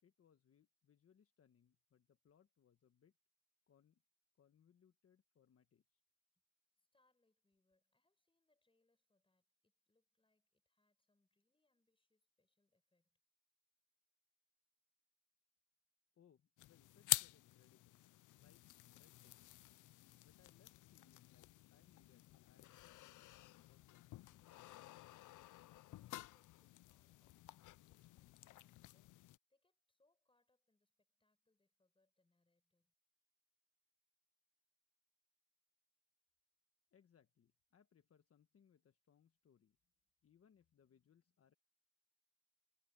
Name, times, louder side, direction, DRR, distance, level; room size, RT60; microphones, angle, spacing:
voice 1, 0.0-3.1 3.7-4.0 4.4-6.0 16.1-18.1 18.3-19.6 20.2-24.5 36.9-39.8 40.2-41.5, left 8 dB, 50° left, 1.2 m, -73 dB
voice 2, 6.7-13.2 25.7-29.2 29.5-32.9, left 2 dB, 15° left, 7.0 m, -84 dB
sound 1, 16.6-29.4, left 16 dB, 80° left, 0.5 m, -48 dB
cardioid pair, 95°, 30 cm